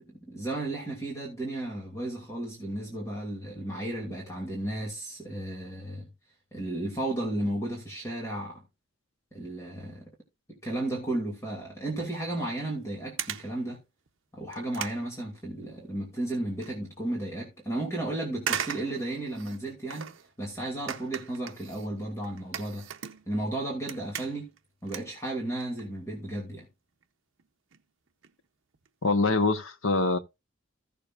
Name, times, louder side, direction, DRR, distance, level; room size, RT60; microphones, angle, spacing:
voice 1, 0.1-6.1 6.5-8.6 9.3-10.1 10.5-13.8 14.3-20.1 20.4-22.9 23.3-24.5 24.8-26.7, right 1 dB, 15° left, 2.5 m, -34 dB
sound 1, 12.6-12.8 13.2-13.6 14.1-14.2 14.5-15.9 16.2-16.7 17.2-17.3 18.4-20.3 20.9-23.5 23.8-24.6 24.9-25.9 26.1-26.3 27.0-27.1 27.4-27.5 27.7-27.8 28.1-28.3 28.7-28.9 29.1-29.2, right 9 dB, 75° right, 0.7 m, -38 dB
voice 2, 29.0-30.2, left 3 dB, 85° left, 1.1 m, -24 dB
15.5 x 6.8 x 2.5 m
head